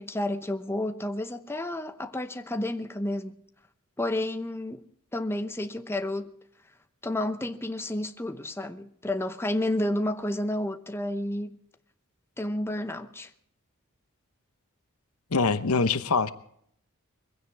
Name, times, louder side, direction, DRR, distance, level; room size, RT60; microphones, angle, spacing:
voice 1, 0.0-3.4 4.0-4.8 5.1-6.3 7.0-11.6 12.4-13.3, left 1 dB, 10° left, 0.8 m, -31 dB
voice 2, 15.3-16.3, left 4 dB, 75° left, 0.9 m, -24 dB
22.0 x 16.0 x 3.4 m
head